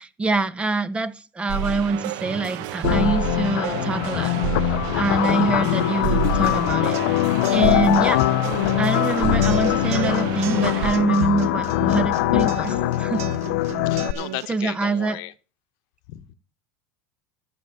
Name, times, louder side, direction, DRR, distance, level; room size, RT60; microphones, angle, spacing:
voice 1, 0.0-7.2 7.5-8.3 8.8-13.3 14.5-15.2, right 3 dB, 15° right, 1.2 m, -25 dB
sound 1, 1.5-10.9, right 11 dB, 60° right, 1.0 m, -29 dB
sound 2, 2.8-14.1, left 19 dB, 80° left, 0.5 m, -22 dB
sound 3, 6.5-14.5, right 14 dB, 90° right, 1.2 m, -36 dB
voice 2, 13.8-15.3 16.1-16.3, left 17 dB, 60° left, 1.1 m, -35 dB
12.5 x 7.7 x 6.7 m
supercardioid pair, 145°, 8 cm